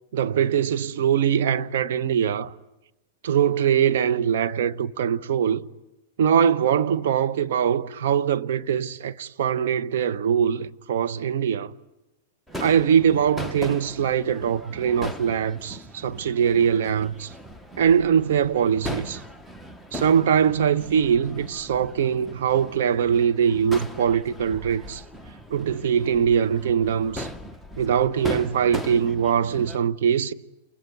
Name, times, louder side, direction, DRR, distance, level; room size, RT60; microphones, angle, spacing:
voice 1, 0.1-2.5 3.2-5.6 6.2-11.7 12.6-17.3 17.8-19.2 19.9-25.0 25.5-27.3 27.8-30.3, right 8 dB, 75° right, 1.0 m, -22 dB
Crowd / Fireworks, 12.5-29.8, equal, 5° right, 1.1 m, -38 dB
28.5 x 22.5 x 9.2 m
hypercardioid pair, 130°, 0 cm